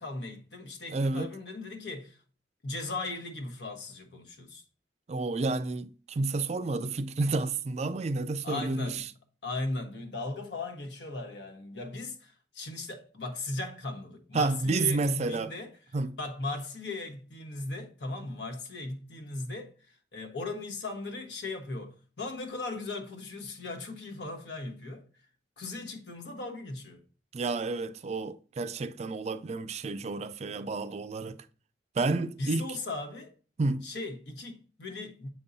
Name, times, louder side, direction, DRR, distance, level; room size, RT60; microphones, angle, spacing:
voice 1, 0.0-2.2 2.6-4.6 8.4-9.1 9.4-15.7 16.2-19.7 20.1-25.0 25.6-27.0 32.4-33.3 33.8-35.3, left 2 dB, 75° left, 1.3 m, -37 dB
voice 2, 0.9-1.3 5.1-9.0 14.3-15.5 15.9-16.2 27.3-31.4 32.0-32.7 33.6-33.9, right 3 dB, 40° right, 0.4 m, -30 dB
7.6 x 5.3 x 2.7 m
head